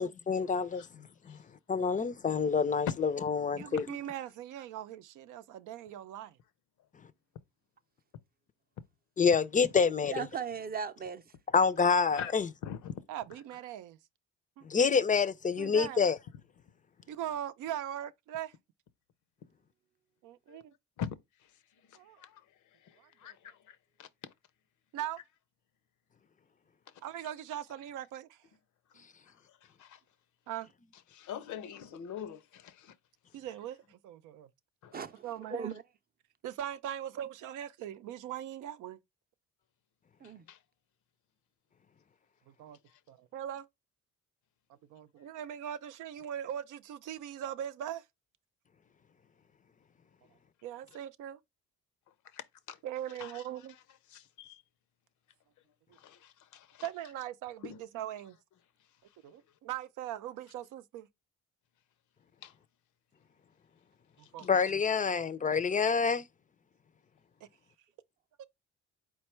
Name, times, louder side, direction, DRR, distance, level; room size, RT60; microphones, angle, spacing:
voice 1, 0.0-0.8 1.7-3.8 9.2-10.1 11.5-12.5 14.7-16.2 64.5-66.2, left 5 dB, 25° left, 0.4 m, -27 dB
voice 2, 0.7-1.4 3.7-3.9 12.1-12.3 12.6-13.0 20.5-20.6 21.0-21.1 21.9-22.4 22.8-24.3 29.5-30.0 31.1-32.9 34.8-34.9 40.5-40.6 52.3-52.8 53.2-53.4 54.1-54.6 55.9-56.9 57.6-57.8 62.4-62.5, left 8 dB, 75° left, 0.6 m, -44 dB
voice 3, 3.6-6.4 13.1-14.0 14.6-14.7 15.6-16.0 17.1-18.5 20.2-20.7 21.9-22.2 23.0-23.4 24.9-25.2 27.0-28.4 30.5-30.7 33.3-34.5 35.2-35.7 36.4-39.0 42.5-42.8 43.1-43.7 44.9-48.0 50.6-51.4 52.8-53.7 56.8-58.4 59.2-61.1 64.2-64.5 65.2-65.3 68.4-68.5, right 11 dB, 85° right, 0.5 m, -40 dB
voice 4, 10.1-11.2 34.9-35.8 40.2-40.5, right 6 dB, 30° right, 0.5 m, -38 dB
4.4 x 2.2 x 4.3 m
cardioid pair, 90°, 30 cm